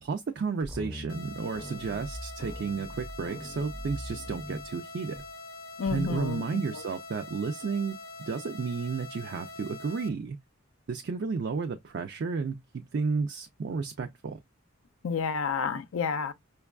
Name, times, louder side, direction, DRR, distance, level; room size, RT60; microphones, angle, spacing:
voice 1, 0.0-5.2 5.9-10.4 10.9-14.4, right 5 dB, 55° right, 0.4 m, -32 dB
sound 1, 0.6-4.7 5.2-5.3 5.9-6.3, equal, 5° left, 0.5 m, -42 dB
sound 2, 1.1-10.1, left 2 dB, 45° left, 0.7 m, -44 dB
voice 2, 5.8-6.4 15.0-16.3, left 5 dB, 75° left, 0.4 m, -29 dB
5.2 x 2.3 x 2.3 m
head